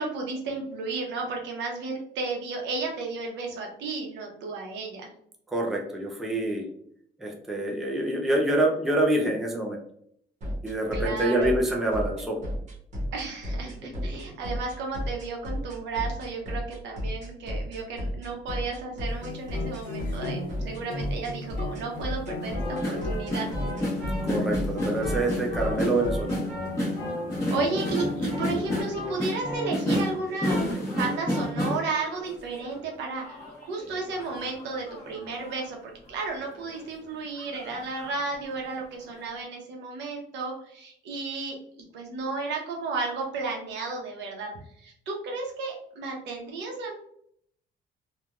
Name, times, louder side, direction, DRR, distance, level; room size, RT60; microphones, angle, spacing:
voice 1, 0.0-5.1 10.9-11.5 13.1-23.5 27.5-41.6 41.9-44.5 44.8-47.0, right 3 dB, 85° right, 1 dB, 0.8 m, -33 dB
voice 2, 5.5-6.6 7.2-9.8 10.6-12.4 24.3-26.4, right 1 dB, ahead, 0 dB, 0.3 m, -26 dB
sound 1, 10.4-26.4, equal, 40° right, 0.9 m, -32 dB
sound 2, 19.1-28.8, left 2 dB, 55° left, 0.7 m, -37 dB
sound 3, 22.4-32.8 33.2-35.6 36.2-36.3 36.5-36.8 37.4-38.3 38.7-38.8, left 1 dB, 15° left, 1.1 m, -31 dB
3.0 x 2.2 x 2.4 m, 0.67 s
cardioid pair, 165°, 18 cm